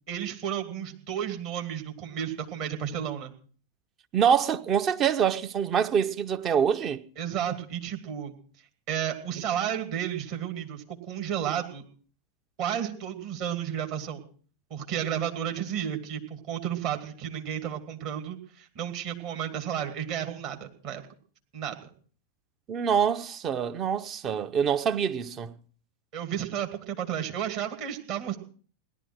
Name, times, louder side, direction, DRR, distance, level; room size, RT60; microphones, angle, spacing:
voice 1, 0.1-3.3 7.2-8.4 8.9-11.8 12.6-14.2 14.7-21.0 21.5-21.9 26.1-28.4, right 9 dB, 45° right, 2.6 m, -32 dB
voice 2, 4.1-7.0 22.7-25.6, right 8 dB, 30° right, 0.8 m, -25 dB
17.0 x 11.5 x 6.3 m
figure-of-eight pair, 90°, 0 cm